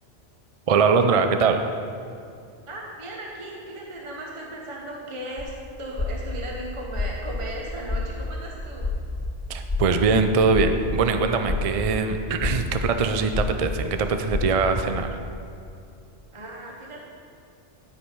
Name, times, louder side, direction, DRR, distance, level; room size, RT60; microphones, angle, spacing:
voice 1, 0.7-1.6 9.5-15.2, right 4 dB, 55° right, 7 dB, 0.4 m, -22 dB
voice 2, 2.7-5.5 5.8-8.9 16.3-17.0, right 1 dB, 25° right, -2 dB, 1.0 m, -36 dB
sound 1, 5.4-14.7, left 3 dB, 25° left, 1.3 m, -29 dB
12.5 x 4.9 x 5.5 m, 2.5 s
omnidirectional pair, 1.3 m